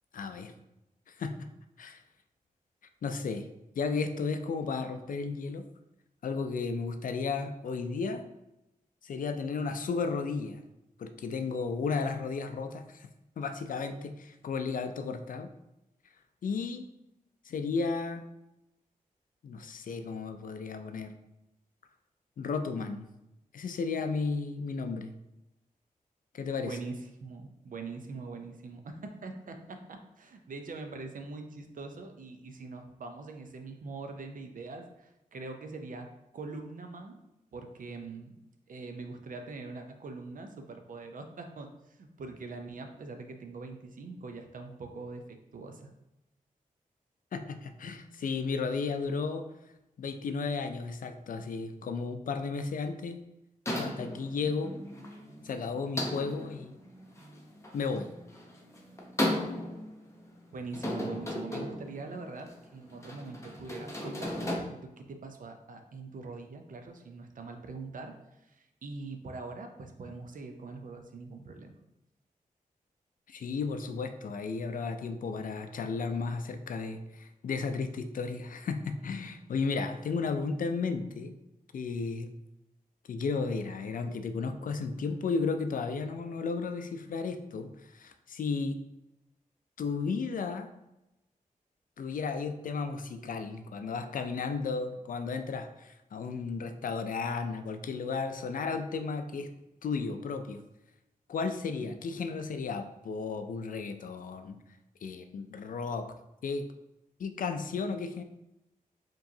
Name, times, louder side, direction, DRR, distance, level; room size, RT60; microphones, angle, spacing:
voice 1, 0.1-0.5 1.1-1.4 1.8-2.0 3.0-3.5 3.8-5.7 6.2-8.2 9.0-10.6 11.0-13.1 13.4-15.5 16.4-16.9 17.4-18.3 19.4-21.1 22.4-23.1 23.5-25.1 26.3-26.8 47.3-49.5 50.0-53.2 53.7-54.8 55.4-56.8 57.7-58.1 73.3-81.3 81.7-82.3 83.1-88.8 89.8-90.7 92.0-99.5 99.8-100.6 101.3-104.6 105.0-106.1 106.4-106.7 107.2-108.2, left 4 dB, 70° left, 8 dB, 0.4 m, -34 dB
voice 2, 26.6-36.1 36.3-37.2 37.5-38.4 38.7-45.9 60.5-68.1 68.5-71.8, right 3 dB, 65° right, 5 dB, 0.6 m, -43 dB
sound 1, 53.7-64.6, left 1 dB, 20° left, 0.8 m, -37 dB
4.6 x 3.0 x 2.7 m, 0.90 s
cardioid pair, 75°, 15 cm